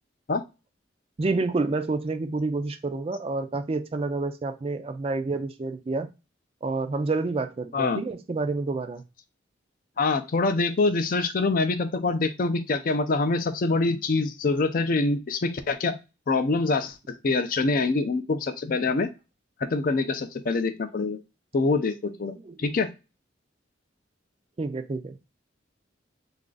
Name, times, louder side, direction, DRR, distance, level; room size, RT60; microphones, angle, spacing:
voice 1, 1.2-6.1 6.6-9.0 22.2-22.7 24.6-25.2, right 3 dB, 30° right, 9 dB, 0.3 m, -29 dB
voice 2, 10.0-16.0 16.3-19.1 19.6-21.2 21.5-22.3 22.6-22.9, left 3 dB, 45° left, 10 dB, 0.4 m, -25 dB
3.3 x 2.5 x 3.8 m, 0.28 s
head